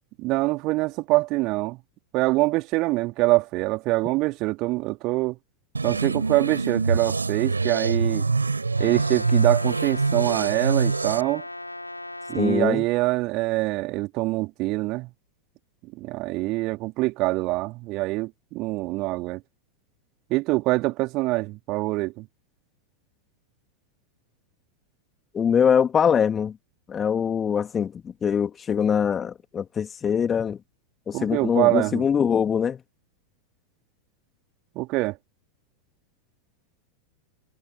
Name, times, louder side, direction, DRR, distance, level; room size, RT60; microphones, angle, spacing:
voice 1, 0.2-1.8 2.1-5.4 5.8-8.3 8.8-11.4 12.3-15.1 15.9-19.4 20.3-22.3 31.1-32.0 34.7-35.2, right 21 dB, 40° right, 3.1 m, -24 dB
sound 1, 5.7-11.2, right 4 dB, 80° right, 6.0 m, -25 dB
Brass instrument, 8.7-12.7, left 1 dB, 85° left, 5.8 m, -37 dB
voice 2, 12.4-12.8 25.3-26.6 26.9-30.6 31.1-32.8, left 7 dB, 20° left, 3.5 m, -23 dB
figure-of-eight pair, 90°, 0 cm